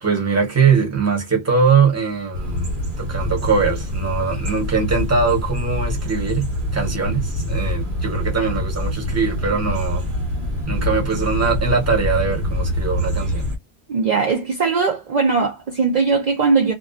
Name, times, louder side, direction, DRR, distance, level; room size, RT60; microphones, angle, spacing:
voice 1, 0.0-10.1 10.7-13.5, right 5 dB, 15° right, 0.8 m, -21 dB
sound 1, 2.3-13.6, left 1 dB, 75° right, 1.2 m, -25 dB
voice 2, 13.9-16.7, right 4 dB, 50° right, 0.6 m, -19 dB
2.5 x 2.3 x 2.2 m
omnidirectional pair, 1.1 m